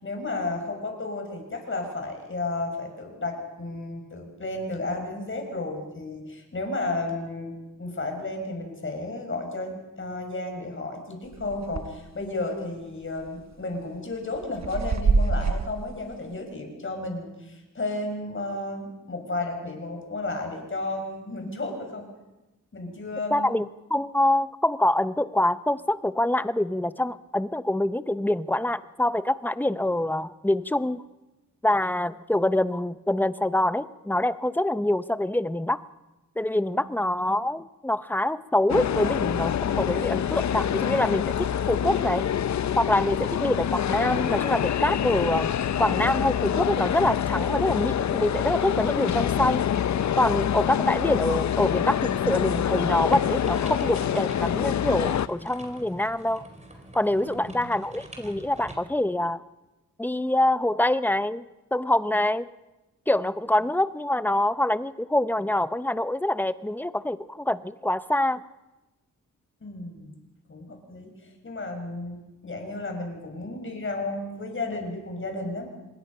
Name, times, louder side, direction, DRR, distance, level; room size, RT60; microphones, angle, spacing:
voice 1, 0.0-7.5 7.8-22.0 22.7-23.5 36.6-37.1 57.1-57.7 69.6-70.1 70.5-75.7, left 2 dB, 40° left, 3 dB, 6.2 m, -33 dB
sound 1, 11.3-12.0 12.4-12.5 13.2-13.5 14.1-15.8, right 4 dB, 55° right, 1.4 m, -25 dB
voice 2, 23.3-31.0 31.6-35.8 36.4-42.2 42.8-49.6 50.2-56.5 56.9-59.4 60.0-61.4 61.7-62.5 63.1-68.4, left 1 dB, 5° left, 13 dB, 0.7 m, -25 dB
sound 2, 38.7-55.3, left 9 dB, 60° left, 0.6 m, -26 dB
sound 3, 53.1-58.8, right 1 dB, 20° right, 4.2 m, -44 dB
26.0 x 21.0 x 5.6 m, 1.0 s
cardioid pair, 80°, 32 cm